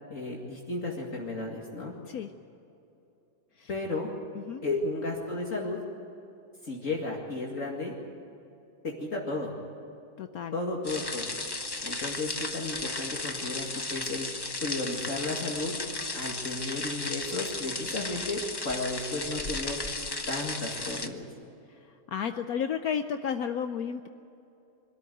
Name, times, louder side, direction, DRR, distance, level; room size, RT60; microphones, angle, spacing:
voice 1, 0.1-1.9 3.7-4.1 4.6-5.8 6.6-7.9 8.8-9.5 10.5-11.3 11.8-14.3 14.6-15.7 16.1-19.8 20.3-21.2, left 2 dB, 50° left, -2 dB, 2.6 m, -33 dB
voice 2, 10.2-10.5 22.1-24.1, left 7 dB, 65° left, 8 dB, 1.1 m, -32 dB
sound 1, 10.8-21.1, left 2 dB, 20° left, 0.7 m, -35 dB
24.5 x 13.5 x 9.2 m, 2.9 s
omnidirectional pair, 1.8 m